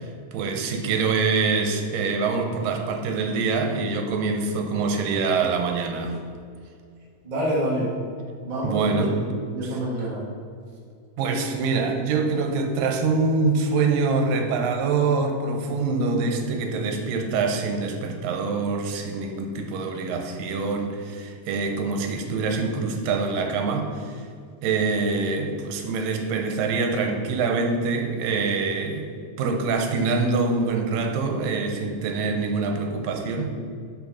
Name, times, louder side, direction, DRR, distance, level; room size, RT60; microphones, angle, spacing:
voice 1, 0.0-6.2 8.6-9.2 9.6-9.8 11.2-24.2 24.6-29.1 29.4-33.5, right 4 dB, 85° right, 4 dB, 2.5 m, -25 dB
voice 2, 7.2-7.9 8.4-9.1 9.5-10.2, right 1 dB, 30° right, -5 dB, 0.8 m, -27 dB
6.3 x 6.1 x 5.6 m, 2.2 s
omnidirectional pair, 3.9 m